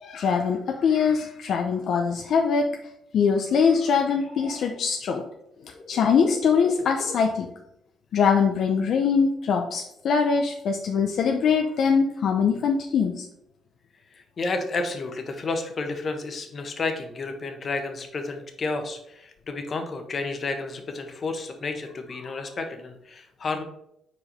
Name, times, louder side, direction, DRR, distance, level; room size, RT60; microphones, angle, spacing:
voice 1, 0.0-2.7 3.1-5.2 5.9-7.5 8.1-13.2, left 6 dB, 65° left, 3 dB, 0.7 m, -22 dB
voice 2, 5.7-6.5 14.4-23.6, left 3 dB, 45° left, 5 dB, 1.2 m, -31 dB
5.0 x 4.8 x 5.4 m, 0.78 s
cardioid pair, 90°, 0 cm